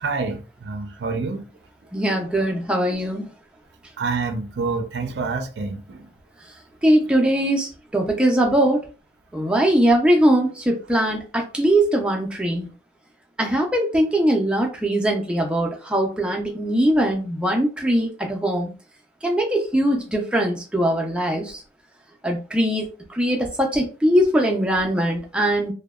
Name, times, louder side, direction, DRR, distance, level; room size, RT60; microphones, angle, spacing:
voice 1, 0.0-1.4 4.0-6.0 9.6-9.7, right 4 dB, 80° right, 0.4 m, -27 dB
voice 2, 1.9-3.3 6.8-8.8 9.3-12.7 13.4-18.7 19.2-21.6 22.2-25.7, right 1 dB, 5° right, 0.4 m, -21 dB
2.7 x 2.1 x 2.3 m
head